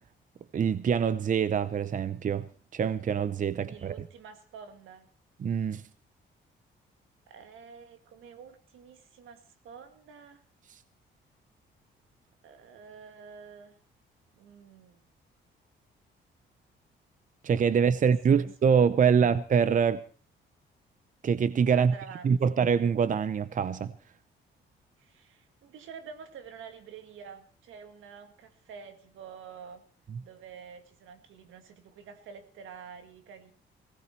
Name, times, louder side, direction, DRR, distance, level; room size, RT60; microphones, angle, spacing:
voice 1, 0.5-2.5 2.7-4.0 5.4-5.9 17.4-20.0 21.2-21.9 22.2-23.9, right 7 dB, 40° right, 0.7 m, -25 dB
voice 2, 3.5-5.1 7.3-10.4 12.4-13.8 14.3-15.0 17.7-18.5 18.7-19.3 21.7-22.6 25.0-29.8 30.2-33.5, right 6 dB, 80° right, 2.0 m, -48 dB
18.0 x 16.5 x 4.5 m
cardioid pair, 90°, 20 cm